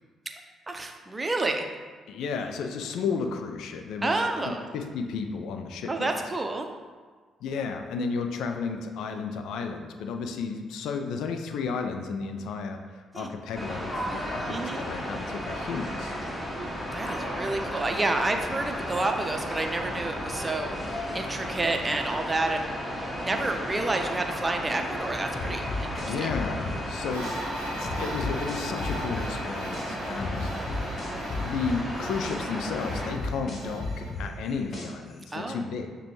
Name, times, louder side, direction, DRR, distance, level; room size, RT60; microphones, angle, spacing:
voice 1, 0.7-1.7 4.0-4.6 5.9-6.7 13.1-13.3 14.5-14.8 16.9-26.3 35.3-35.6, right 2 dB, 25° right, 4 dB, 0.5 m, -29 dB
voice 2, 2.1-6.1 7.4-16.1 26.0-30.8 31.4-35.9, left 5 dB, 65° left, 5 dB, 0.3 m, -33 dB
sound 1, 13.5-33.1, equal, 15° left, 1.0 m, -34 dB
sound 2, 25.4-27.4 27.9-29.9 30.2-32.4 32.9-35.1, left 3 dB, 45° left, 0.8 m, -33 dB
sound 3, 27.1-34.1, right 1 dB, 85° right, 0.6 m, -41 dB
6.5 x 2.2 x 3.1 m, 1.5 s
figure-of-eight pair, 40°, 0 cm